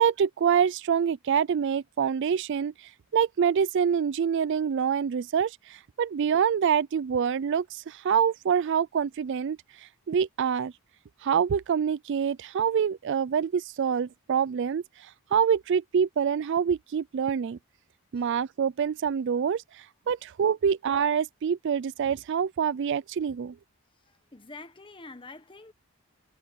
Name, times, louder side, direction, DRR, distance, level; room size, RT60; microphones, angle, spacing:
voice 1, 0.0-10.7 11.2-17.6 18.1-23.6, right 7 dB, 55° right, 0.3 m, -26 dB
voice 2, 24.0-25.7, left 3 dB, 20° left, 1.3 m, -46 dB
head